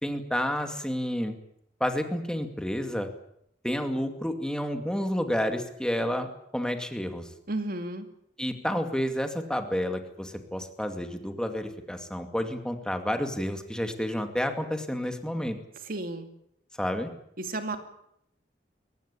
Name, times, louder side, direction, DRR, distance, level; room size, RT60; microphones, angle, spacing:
voice 1, 0.0-1.4 1.8-3.1 3.6-7.3 8.4-15.6 16.8-17.1, equal, 5° left, 6 dB, 2.4 m, -30 dB
voice 2, 7.5-8.1 15.8-16.3 17.4-17.8, right 2 dB, 55° right, 7 dB, 2.4 m, -32 dB
23.0 x 18.5 x 8.5 m, 0.74 s
head